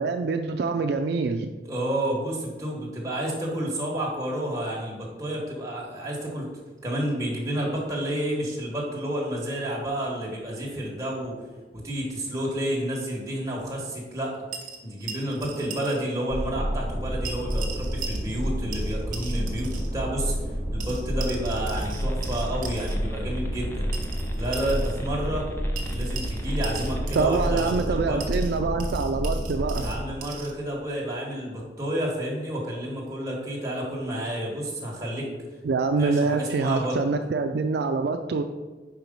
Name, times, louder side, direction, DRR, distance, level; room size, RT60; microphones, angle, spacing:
voice 1, 0.0-1.5 27.2-29.9 35.6-38.4, right 4 dB, 60° right, 5 dB, 0.3 m, -25 dB
voice 2, 1.7-6.5 6.8-11.3 11.7-14.4 14.8-20.4 20.7-23.9 24.3-25.5 25.9-28.2 29.7-35.3 36.0-37.0, right 1 dB, 20° right, -3 dB, 1.4 m, -30 dB
sound 1, 14.5-16.3 17.2-18.5 18.7-19.9 20.8-22.9 23.9-25.0 25.8-27.9 28.2-30.5, right 6 dB, 45° right, 0.8 m, -39 dB
sound 2, 16.3-30.0, equal, 35° left, 1.1 m, -29 dB
sound 3, 21.7-27.2, equal, 15° left, 0.5 m, -43 dB
4.9 x 4.5 x 5.2 m, 1.3 s
head